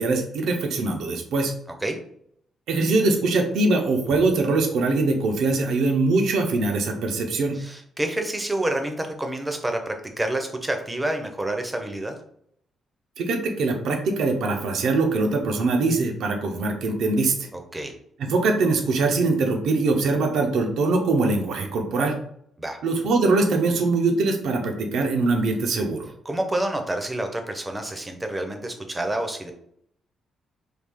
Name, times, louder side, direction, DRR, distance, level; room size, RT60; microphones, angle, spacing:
voice 1, 0.0-1.5 2.7-7.6 13.2-17.5 18.2-22.2 22.8-26.1, right 3 dB, 75° right, 4 dB, 0.6 m, -22 dB
voice 2, 7.5-12.2 17.5-17.9 22.6-22.8 26.2-29.5, right 1 dB, 15° right, 5 dB, 0.5 m, -28 dB
3.3 x 2.3 x 3.5 m, 0.69 s
cardioid pair, 125°, 0 cm